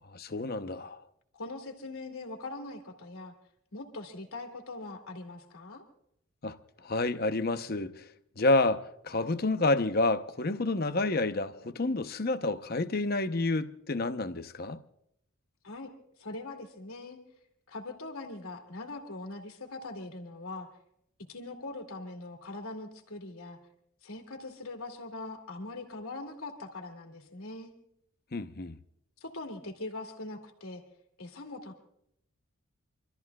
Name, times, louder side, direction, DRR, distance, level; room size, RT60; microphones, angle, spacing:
voice 1, 0.1-1.0 6.4-6.6 6.8-8.0 8.4-14.8 28.3-28.8, left 2 dB, 45° left, 0.8 m, -29 dB
voice 2, 1.3-3.3 3.7-5.8 15.6-15.9 16.2-17.2 17.7-20.7 21.3-23.6 24.0-27.7 29.2-30.8 31.2-31.8, left 2 dB, 80° left, 2.5 m, -41 dB
28.5 x 14.0 x 2.4 m
head